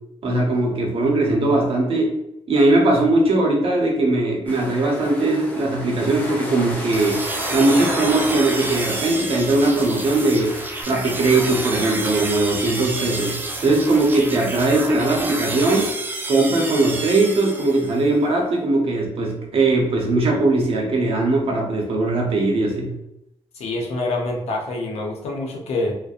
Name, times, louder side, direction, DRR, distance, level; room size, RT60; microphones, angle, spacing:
voice 1, 0.2-2.1 2.5-7.2 7.5-10.5 10.9-15.9 16.3-22.9, right 2 dB, 55° right, 0 dB, 0.7 m, -20 dB
sound 1, 4.5-10.8, equal, 15° left, 0.7 m, -33 dB
sound 2, 6.9-18.1, right 2 dB, 20° right, 0.3 m, -29 dB
voice 2, 23.5-25.9, left 2 dB, 75° left, 0 dB, 0.7 m, -26 dB
2.6 x 2.1 x 2.3 m, 0.85 s
cardioid pair, 105°, 11 cm